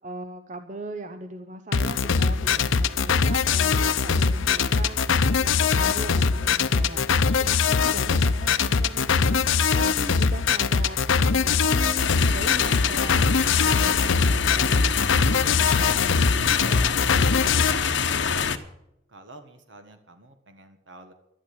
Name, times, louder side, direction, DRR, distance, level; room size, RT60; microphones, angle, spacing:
voice 1, 0.0-15.1, right 1 dB, 40° right, 8 dB, 0.8 m, -40 dB
sound 1, 1.7-17.7, left 5 dB, 90° left, 0.7 m, -22 dB
sound 2, 12.0-18.6, left 5 dB, 70° left, 1.1 m, -26 dB
voice 2, 16.4-17.8 18.2-18.6 19.1-21.1, right 2 dB, 75° right, 7 dB, 1.6 m, -46 dB
12.0 x 11.5 x 8.7 m, 0.81 s
head